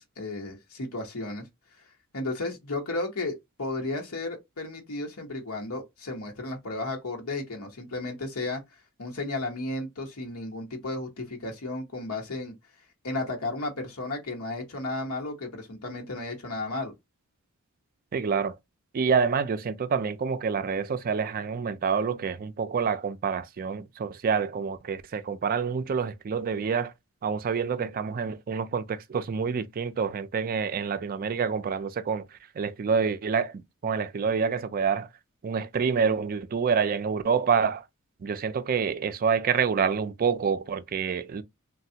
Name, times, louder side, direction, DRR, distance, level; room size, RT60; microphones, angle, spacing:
voice 1, 0.0-1.4 2.1-8.6 9.0-12.5 13.0-16.9, left 2 dB, 85° left, 1.0 m, -33 dB
voice 2, 18.1-18.6 18.9-26.9 27.2-32.2 32.6-35.1 35.4-37.8 38.2-41.4, right 6 dB, 40° right, 0.4 m, -27 dB
3.3 x 2.2 x 2.7 m
head